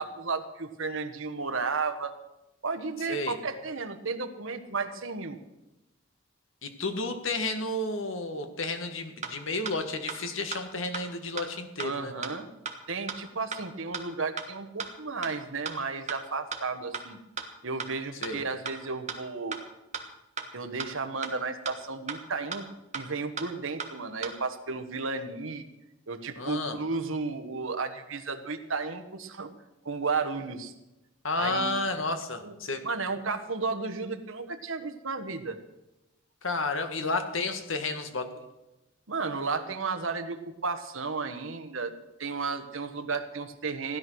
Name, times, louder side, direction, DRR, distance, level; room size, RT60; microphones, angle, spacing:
voice 1, 0.0-2.1 2.6-5.4 11.8-12.5 12.9-17.2 17.6-19.6 20.5-22.7 22.9-25.7 26.1-29.5 29.8-30.7 31.3-31.8 32.4-32.5 32.8-35.6 39.1-40.4 40.6-41.9 42.2-44.0, right 4 dB, 70° right, 7 dB, 1.4 m, -33 dB
voice 2, 6.6-12.3 18.2-18.4 26.4-26.8 31.2-32.9 36.4-38.3, left 2 dB, 70° left, 7 dB, 1.7 m, -31 dB
sound 1, 9.2-9.3 9.7-9.8 10.1-10.2 10.5-10.6 10.9-11.0 11.4-11.5 11.8-11.9 12.2-12.3 12.7-12.8 13.1-13.2 13.5-13.6 13.9-14.0 14.4-14.5 14.8-14.9 15.2-15.3 15.7-15.8 16.1-16.2 16.5-16.6 16.9-17.0 17.4-17.5 17.8-17.9 18.2-18.3 18.7-18.8 19.1-19.2 19.5-19.6 19.9-20.0 20.4-20.5 20.8-20.9 21.2-21.3 21.7-21.8 22.1-22.2 22.5-22.6 22.9-23.0 23.4-23.5 23.8-23.9 24.2-24.3, right 6 dB, 35° right, 1.4 m, -34 dB
16.0 x 11.0 x 6.3 m, 0.96 s
head